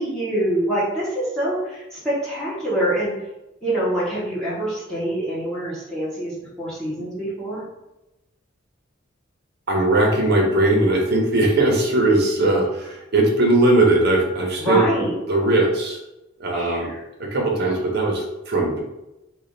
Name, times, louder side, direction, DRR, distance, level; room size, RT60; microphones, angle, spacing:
voice 1, 0.0-3.1 3.6-7.6 14.6-15.1 16.5-17.0, right 1 dB, 5° left, -10 dB, 0.9 m, -25 dB
voice 2, 9.7-14.8 15.3-16.0 16.4-16.9 17.3-18.8, right 2 dB, 55° right, 0 dB, 0.8 m, -19 dB
3.2 x 2.4 x 3.8 m, 0.95 s
head